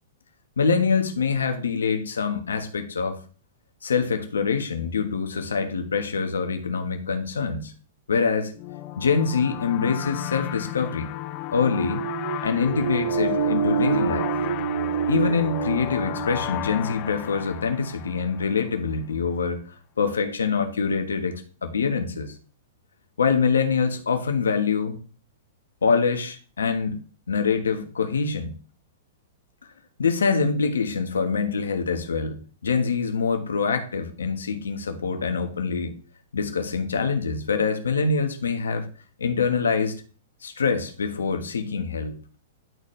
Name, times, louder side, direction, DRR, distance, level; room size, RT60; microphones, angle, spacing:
voice 1, 0.6-3.2 3.8-7.7 8.1-8.5 9.0-11.1 11.5-12.0 12.4-14.3 15.1-19.6 20.0-22.3 23.2-25.0 25.8-27.0 27.3-28.5 30.0-35.9 36.3-38.9 39.2-40.0 40.4-42.2, left 5 dB, 90° left, 7 dB, 1.2 m, -25 dB
sound 1, 8.6-18.9, left 15 dB, 45° left, 0.5 m, -33 dB
sound 2, 11.6-17.3, right 9 dB, 75° right, 0.3 m, -27 dB
10.5 x 4.2 x 3.2 m, 0.38 s
hypercardioid pair, 120°, 0 cm